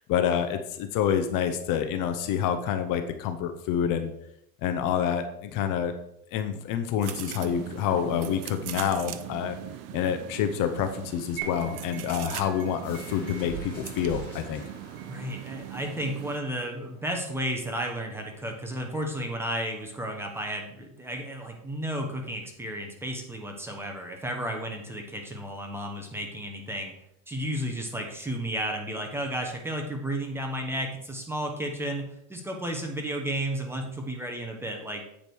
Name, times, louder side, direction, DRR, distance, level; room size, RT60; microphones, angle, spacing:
voice 1, 0.0-4.1 4.6-5.9 6.3-9.6 9.9-14.6, left 8 dB, 50° left, 7 dB, 0.8 m, -27 dB
sound 1, 7.0-16.4, right 13 dB, 40° right, 0.5 m, -40 dB
sound 2, 11.4-16.4, right 9 dB, 60° right, 2.1 m, -45 dB
sound 3, 12.8-18.2, right 3 dB, 10° left, 3.3 m, -46 dB
voice 2, 15.1-26.9 27.3-35.0, right 1 dB, 5° right, 2 dB, 1.1 m, -33 dB
8.6 x 5.1 x 4.6 m, 0.77 s
supercardioid pair, 135°, 42 cm